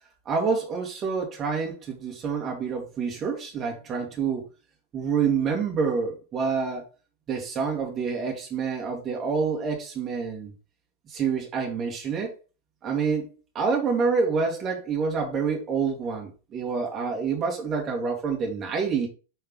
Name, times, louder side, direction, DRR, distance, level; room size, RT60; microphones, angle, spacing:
voice 1, 0.3-4.5 4.9-6.8 7.3-10.5 11.1-12.3 12.8-19.1, right 5 dB, 25° right, 2.0 m, -27 dB
5.8 x 4.3 x 3.8 m
figure-of-eight pair, 95°, 0 cm